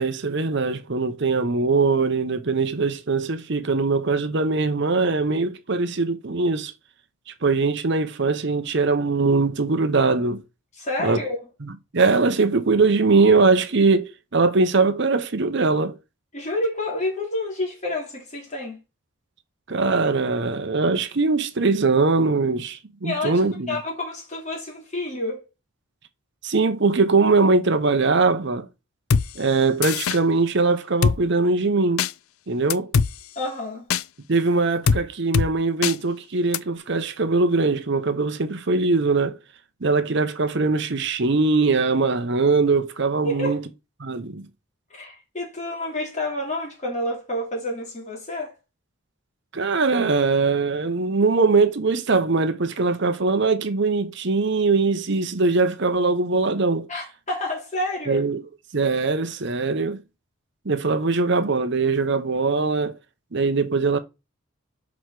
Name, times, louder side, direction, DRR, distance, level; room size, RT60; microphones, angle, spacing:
voice 1, 0.0-6.7 7.4-10.4 11.0-11.2 11.9-16.0 19.7-23.7 26.4-28.7 29.4-32.0 32.5-32.9 34.3-39.4 39.8-43.6 44.0-44.4 49.5-56.9 58.1-58.4 58.7-60.0 60.6-62.9 63.3-64.0, right 3 dB, 55° right, 0.8 m, -21 dB
voice 2, 10.8-11.4 16.3-18.8 23.0-25.4 33.3-33.9 43.2-43.6 44.9-48.5 56.9-58.2, left 1 dB, 30° left, 2.8 m, -29 dB
Drum kit, 29.1-29.3 29.8-30.2 31.0-31.2 32.0-32.1 32.7-33.1 33.9-34.0 34.9-35.0 35.3-35.5 35.8-36.0 36.5-36.6, left 5 dB, 80° left, 0.4 m, -20 dB
6.3 x 4.6 x 4.7 m
head